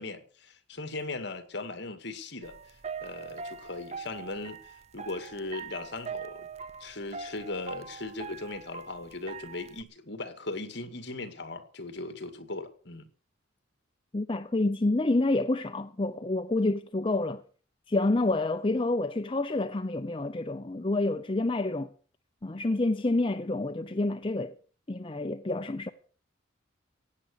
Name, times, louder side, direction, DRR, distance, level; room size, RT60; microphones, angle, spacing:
voice 1, 0.0-2.6 3.0-4.6 4.9-6.5 6.8-13.1, left 2 dB, 55° left, 2.1 m, -38 dB
sound 1, 2.4-9.8, right 5 dB, 35° right, 0.6 m, -42 dB
voice 2, 14.1-17.4 17.9-21.9 22.4-24.5 24.9-25.9, left 2 dB, 25° left, 0.6 m, -28 dB
16.5 x 9.6 x 6.7 m
head